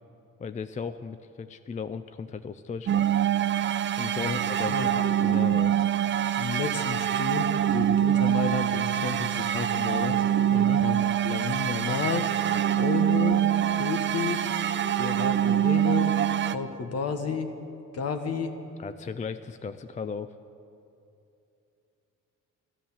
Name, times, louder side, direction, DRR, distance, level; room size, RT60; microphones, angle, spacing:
voice 1, 0.4-3.1 4.0-5.8 10.5-10.8 18.8-20.4, left 5 dB, 25° left, 11 dB, 0.4 m, -36 dB
sound 1, 2.9-16.6, right 10 dB, 40° right, 0.5 m, -25 dB
voice 2, 4.2-4.9 6.4-10.2 10.8-12.3 12.8-13.4 13.7-14.4 14.9-16.2 16.5-17.5 17.9-18.5, left 5 dB, 55° left, 7 dB, 1.4 m, -31 dB
13.0 x 12.5 x 7.3 m, 2.7 s
cardioid pair, 90°, 30 cm